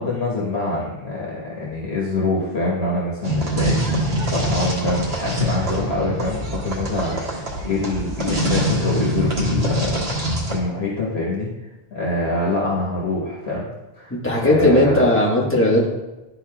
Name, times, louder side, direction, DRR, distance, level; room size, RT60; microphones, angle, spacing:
voice 1, 0.0-11.5 11.9-13.7 14.0-15.1, left 2 dB, 80° left, -5 dB, 1.5 m, -25 dB
sound 1, 3.2-10.6, equal, 70° right, 1.6 m, -24 dB
voice 2, 14.1-15.9, left 1 dB, 10° left, -5 dB, 1.4 m, -17 dB
11.0 x 4.2 x 2.3 m, 1.0 s
omnidirectional pair, 1.1 m